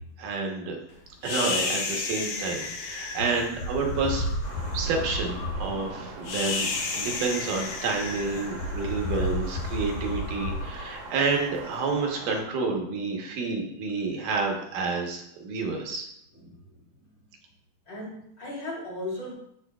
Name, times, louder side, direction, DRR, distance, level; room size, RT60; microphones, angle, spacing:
voice 1, 0.2-0.8 1.2-4.2 4.7-16.1, right 4 dB, 80° right, 1 dB, 2.6 m, -29 dB
sound 1, 1.2-11.6, left 2 dB, 90° left, 2.5 m, -32 dB
Thunder, 4.4-12.4, right 3 dB, 65° right, 1.9 m, -42 dB
voice 2, 10.5-10.8 16.3-17.0 17.9-19.3, left 2 dB, 45° left, -3 dB, 2.9 m, -38 dB
13.0 x 4.5 x 2.3 m, 0.73 s
omnidirectional pair, 3.7 m